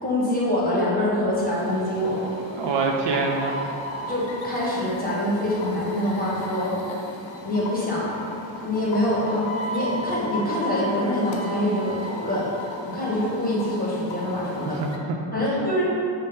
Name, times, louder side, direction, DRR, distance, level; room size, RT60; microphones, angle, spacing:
voice 1, 0.0-2.2 4.1-6.7 7.4-8.1 8.6-12.5 12.9-14.8 15.3-15.8, left 1 dB, 20° left, -7 dB, 1.5 m, -25 dB
sound 1, 1.4-15.0, left 1 dB, 75° left, 0.7 m, -35 dB
voice 2, 2.5-3.7 14.7-15.6, right 3 dB, 70° right, 1 dB, 0.5 m, -26 dB
5.3 x 2.1 x 3.5 m, 2.7 s
cardioid pair, 70°, 45 cm